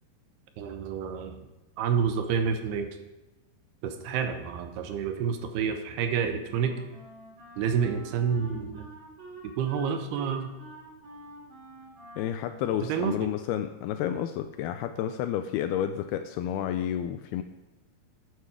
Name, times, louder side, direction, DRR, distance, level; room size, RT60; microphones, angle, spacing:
voice 1, 0.6-1.4 1.8-3.0 3.8-6.8 7.6-8.9 9.4-10.5 12.9-13.2, right 7 dB, 80° right, 7 dB, 3.0 m, -29 dB
Wind instrument woodwind instrument, 6.5-13.9, right 1 dB, 50° right, 4.9 m, -48 dB
voice 2, 12.2-17.4, left 10 dB, 85° left, 8 dB, 2.5 m, -30 dB
13.0 x 9.5 x 4.8 m, 1.0 s
omnidirectional pair, 4.7 m